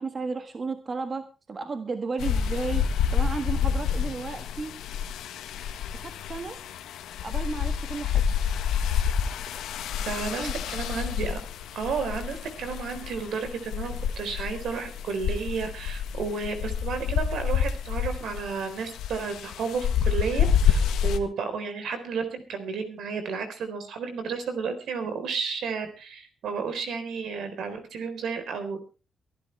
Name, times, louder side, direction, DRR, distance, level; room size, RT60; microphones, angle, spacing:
voice 1, 0.0-4.8 5.9-6.6 7.2-8.3 10.4-10.6, right 4 dB, 40° right, 7 dB, 1.6 m, -34 dB
sound 1, 2.2-21.2, left 8 dB, 85° left, 1.5 m, -28 dB
voice 2, 10.0-11.4 11.7-28.8, right 5 dB, 75° right, 8 dB, 4.0 m, -32 dB
23.5 x 11.5 x 3.3 m, 0.33 s
cardioid pair, 80°, 0 cm